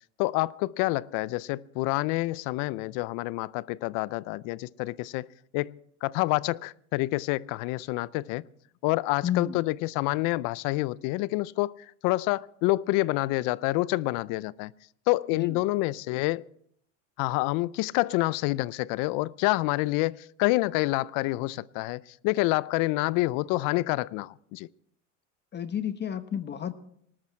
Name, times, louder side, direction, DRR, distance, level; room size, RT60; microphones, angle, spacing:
voice 1, 0.2-5.3 5.5-5.8 6.0-8.4 8.8-14.7 15.1-16.4 17.2-24.7, left 20 dB, 60° left, 0.5 m, -27 dB
voice 2, 9.2-9.6 15.3-15.6 25.5-26.7, left 9 dB, 30° left, 0.9 m, -31 dB
20.0 x 12.5 x 4.4 m
supercardioid pair, 105°, 37 cm